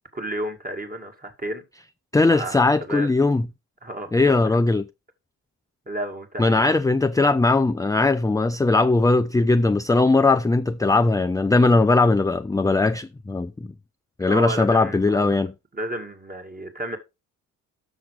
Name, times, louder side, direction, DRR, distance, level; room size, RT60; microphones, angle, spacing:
voice 1, 0.1-1.6 2.2-3.1 3.8-4.5 5.9-6.9 14.2-15.3 15.7-17.0, right 1 dB, 25° right, 2.5 m, -32 dB
voice 2, 2.1-3.4 4.1-4.8 6.4-13.5 14.2-15.5, left 3 dB, 10° left, 0.5 m, -19 dB
7.2 x 6.4 x 5.0 m
cardioid pair, 75°, 36 cm